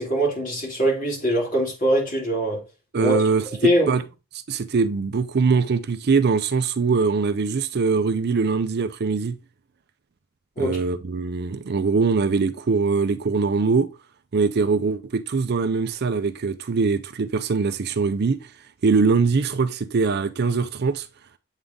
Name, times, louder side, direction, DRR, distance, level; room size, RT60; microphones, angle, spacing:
voice 1, 0.0-2.6 3.0-3.2 3.6-3.9 10.6-10.8, right 1 dB, 35° left, 2.8 m, -22 dB
voice 2, 2.9-4.0 4.5-9.4 10.6-13.9 14.3-18.5 18.8-21.1, right 4 dB, 50° right, 0.4 m, -22 dB
8.1 x 3.7 x 3.7 m
head